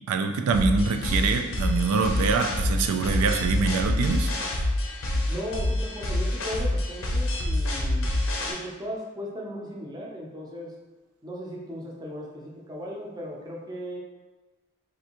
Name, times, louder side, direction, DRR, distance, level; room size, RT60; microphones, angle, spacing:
voice 1, 0.1-4.3, right 4 dB, 85° right, 6 dB, 0.3 m, -25 dB
sound 1, 0.5-8.5, left 1 dB, 65° left, 0.6 m, -27 dB
voice 2, 5.3-8.1 8.5-10.7 11.2-14.0, equal, 20° right, -2 dB, 0.5 m, -36 dB
3.3 x 2.6 x 2.9 m, 1.2 s
head